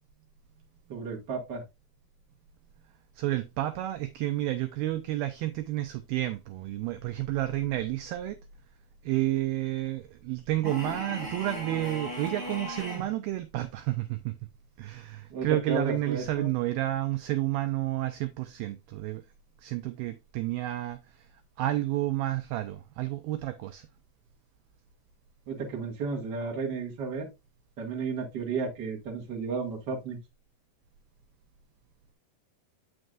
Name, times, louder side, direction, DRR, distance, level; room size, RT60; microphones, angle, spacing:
voice 1, 0.9-1.6 15.3-16.5 25.5-27.3 27.8-30.2, right 4 dB, 50° right, 1.3 m, -33 dB
voice 2, 3.2-8.4 9.0-14.4 14.8-19.2 19.6-21.3 21.6-23.9, right 15 dB, 85° right, 2.1 m, -30 dB
sound 1, 10.6-13.1, right 1 dB, 25° right, 4.8 m, -37 dB
7.8 x 6.2 x 2.4 m
omnidirectional pair, 4.8 m